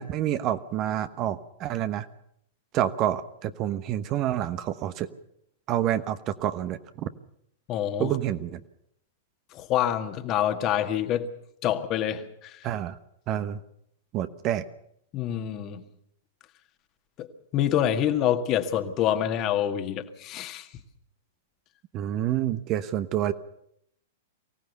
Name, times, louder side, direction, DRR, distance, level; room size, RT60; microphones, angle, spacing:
voice 1, 0.0-2.1 2.7-5.1 5.7-7.1 8.0-8.6 12.6-13.0 13.3-13.6 14.1-14.6 21.9-23.3, right 11 dB, 35° right, 11 dB, 1.1 m, -28 dB
voice 2, 7.7-8.2 9.5-11.3 11.6-12.6 15.1-15.8 17.2-17.3 17.5-20.7, left 10 dB, 35° left, 7 dB, 1.8 m, -26 dB
24.0 x 17.0 x 6.9 m, 0.74 s
figure-of-eight pair, 100°, 0 cm